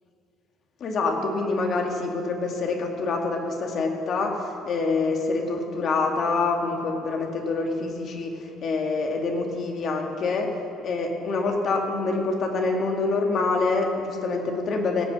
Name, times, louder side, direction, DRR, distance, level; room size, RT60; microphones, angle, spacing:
voice 1, 0.8-10.5 10.8-15.0, left 3 dB, 55° left, 2 dB, 2.1 m, -26 dB
17.0 x 8.1 x 6.2 m, 2.6 s
supercardioid pair, 85°, 0 cm